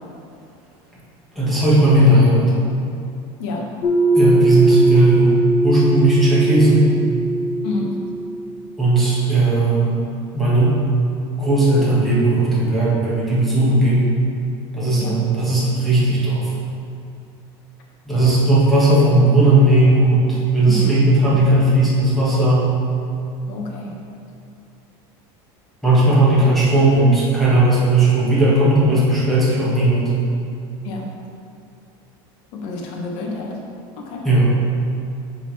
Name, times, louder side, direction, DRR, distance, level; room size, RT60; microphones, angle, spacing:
voice 1, 1.4-2.5 4.1-6.8 8.8-9.9 10.3-10.8 11.3-14.1 14.7-16.5 18.1-22.7 25.8-30.1 34.2-34.5, right 2 dB, ahead, -9 dB, 1.4 m, -16 dB
sound 1, 3.8-8.5, right 2 dB, 30° left, 1.2 m, -19 dB
voice 2, 23.5-23.9 30.8-31.0 32.5-33.6 34.0-34.2, left 3 dB, 60° left, 0 dB, 1.1 m, -28 dB
11.0 x 3.7 x 3.3 m, 2.6 s
cardioid pair, 170°, 12 cm